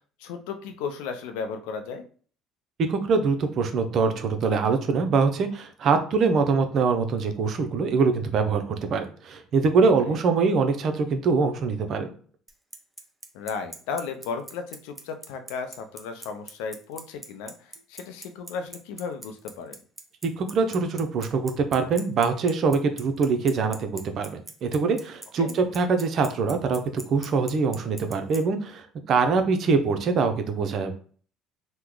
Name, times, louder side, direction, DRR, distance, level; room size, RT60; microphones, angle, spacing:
voice 1, 0.2-2.0 9.8-10.2 13.3-19.8 25.4-25.5, left 5 dB, 80° left, 7 dB, 0.5 m, -35 dB
voice 2, 2.9-12.1 20.2-31.0, right 4 dB, 55° right, 7 dB, 0.6 m, -24 dB
Bicycle, 12.5-28.4, right 2 dB, 10° right, 0.8 m, -40 dB
3.0 x 2.1 x 3.7 m, 0.43 s
supercardioid pair, 75°, 0 cm